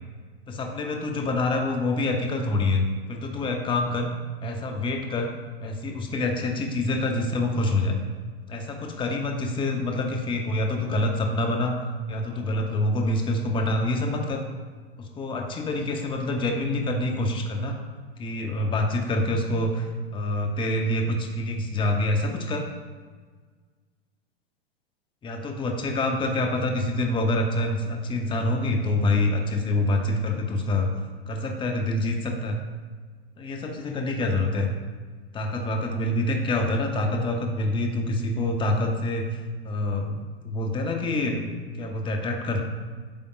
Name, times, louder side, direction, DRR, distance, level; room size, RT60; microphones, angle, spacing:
voice 1, 0.5-4.1 4.4-5.3 5.6-8.0 8.5-11.7 12.1-14.4 15.0-17.8 18.2-19.9 20.1-22.6 25.2-30.9 31.3-32.6 33.4-34.7 35.3-41.5 41.8-42.6, left 2 dB, 15° left, 3 dB, 0.7 m, -26 dB
8.6 x 5.0 x 2.3 m, 1.5 s
hypercardioid pair, 100°, 31 cm